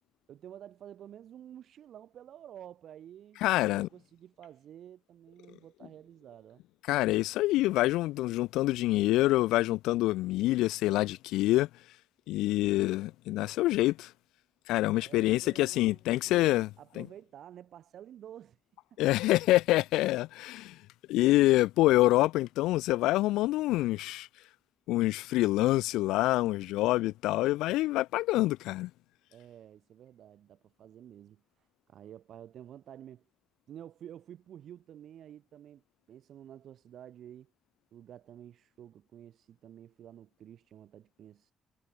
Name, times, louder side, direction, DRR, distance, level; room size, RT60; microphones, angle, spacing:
voice 1, 0.3-6.6 15.0-16.4 16.8-18.6 18.9-19.0 29.3-31.4 31.9-33.2 33.7-35.8 36.1-37.5 37.9-41.5, right 10 dB, 70° right, 2.4 m, -50 dB
voice 2, 3.4-3.9 6.9-11.7 12.3-14.1 14.7-16.7 17.0-17.1 19.0-20.8 21.1-24.3 24.9-28.9, left 17 dB, 90° left, 0.5 m, -26 dB
supercardioid pair, 65°, 0 cm